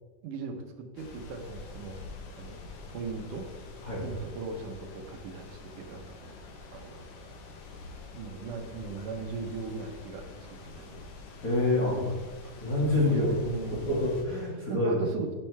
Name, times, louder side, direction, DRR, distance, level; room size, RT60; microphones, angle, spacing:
voice 1, 0.2-2.0 2.3-2.6 2.9-3.5 4.0-6.4 6.7-7.1 8.1-11.1 11.9-12.1 12.4-12.5 13.0-13.9 14.7-15.4, right 4 dB, 75° right, 4 dB, 2.4 m, -39 dB
sound 1, 1.0-14.2, left 3 dB, 80° left, 2.8 m, -46 dB
voice 2, 11.4-12.0 12.6-13.3 13.9-15.0, left 2 dB, 30° left, -6 dB, 2.0 m, -26 dB
13.5 x 6.5 x 3.4 m, 1.3 s
omnidirectional pair, 3.7 m